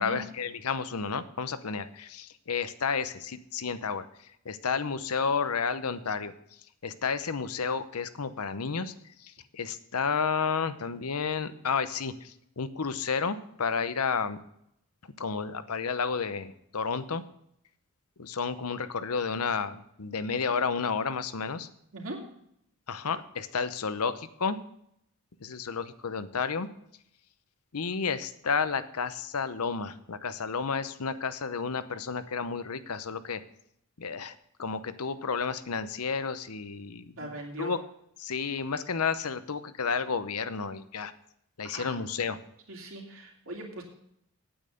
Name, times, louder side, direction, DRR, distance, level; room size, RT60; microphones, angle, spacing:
voice 1, 0.0-4.1 4.4-6.3 6.8-8.9 9.2-14.4 15.2-17.2 18.2-21.7 22.9-24.6 25.4-26.7 27.7-33.4 34.0-34.3 34.6-37.3 37.6-37.8 38.2-41.1 41.6-42.4, left 5 dB, 80° left, 12 dB, 0.8 m, -31 dB
voice 2, 37.2-37.7 41.7-42.0 42.7-43.8, right 2 dB, 65° right, 0 dB, 2.7 m, -40 dB
9.0 x 8.8 x 6.5 m, 0.74 s
head